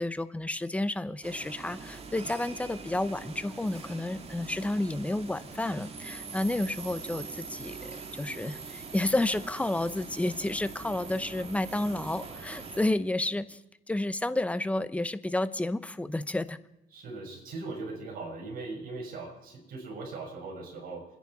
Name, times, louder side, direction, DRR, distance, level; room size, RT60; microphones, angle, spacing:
voice 1, 0.0-13.6 13.9-16.6, left 1 dB, 10° left, 12 dB, 0.8 m, -31 dB
sound 1, 1.2-12.9, right 4 dB, 35° right, 2.1 m, -43 dB
voice 2, 16.9-21.1, right 3 dB, 60° right, 1 dB, 6.2 m, -39 dB
28.0 x 10.5 x 4.8 m, 0.95 s
cardioid pair, 110°, 17 cm